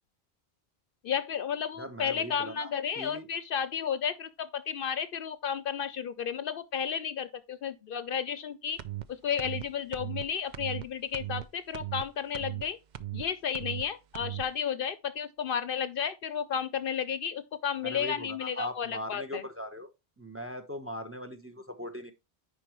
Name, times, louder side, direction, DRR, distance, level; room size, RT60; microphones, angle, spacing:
voice 1, 1.0-8.8 9.1-12.8 13.1-19.4, left 7 dB, 65° left, 0.7 m, -33 dB
voice 2, 1.8-2.7 3.0-3.3 17.8-19.9 20.2-22.1, left 1 dB, 15° right, 0.9 m, -39 dB
sound 1, 8.8-9.0 9.4-9.6 9.9-10.2 10.5-10.8 11.1-11.5 11.7-12.0 12.3-12.6 12.9-13.3 13.5-13.9 14.1-14.5, right 14 dB, 55° right, 0.6 m, -37 dB
9.8 x 5.1 x 3.0 m
omnidirectional pair, 1.1 m